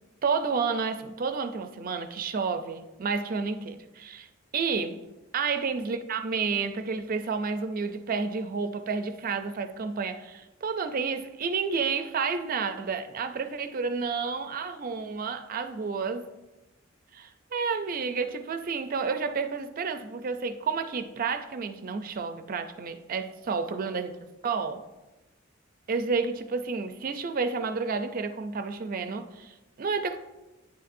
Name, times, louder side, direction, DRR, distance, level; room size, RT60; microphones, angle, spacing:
voice 1, 0.2-4.3 4.5-5.0 5.3-16.3 17.1-24.1 24.4-24.8 25.9-30.2, right 5 dB, 45° right, 0.4 m, -30 dB
9.4 x 6.6 x 2.6 m
head